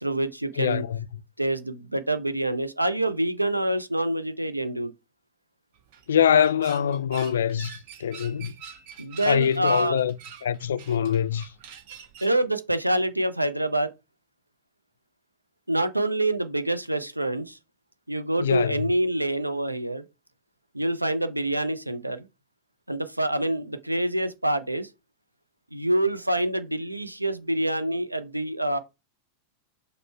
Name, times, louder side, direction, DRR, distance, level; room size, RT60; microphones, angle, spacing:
voice 1, 0.0-0.8 1.4-4.9 9.0-10.0 12.2-13.9 15.7-17.6 18.1-20.0 20.7-22.3 22.9-24.9 25.7-28.8, right 1 dB, 85° right, 0.5 m, -26 dB
voice 2, 0.6-1.0 6.1-8.5 9.3-10.1 10.4-11.5 18.4-18.9, left 8 dB, 65° left, 0.3 m, -24 dB
sound 1, 5.7-12.4, right 8 dB, 50° right, 0.7 m, -46 dB
5.2 x 2.1 x 4.3 m
figure-of-eight pair, 90°, 0 cm